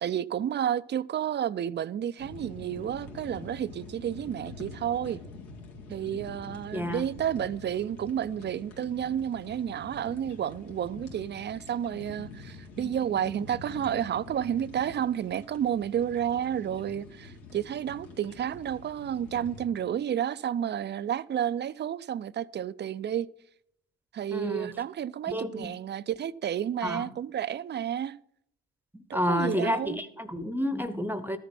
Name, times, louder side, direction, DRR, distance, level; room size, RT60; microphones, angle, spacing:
voice 1, 0.0-5.2 5.9-23.3 24.1-28.2 29.1-30.0, right 9 dB, 35° right, 0.4 m, -31 dB
sound 1, 2.2-19.7, left 3 dB, 80° left, 2.0 m, -46 dB
voice 2, 6.7-7.0 12.8-13.2 24.3-24.7 25.3-25.7 26.8-27.0 29.1-31.4, left 1 dB, 5° right, 0.8 m, -30 dB
12.5 x 7.0 x 5.8 m
hypercardioid pair, 55°, 31 cm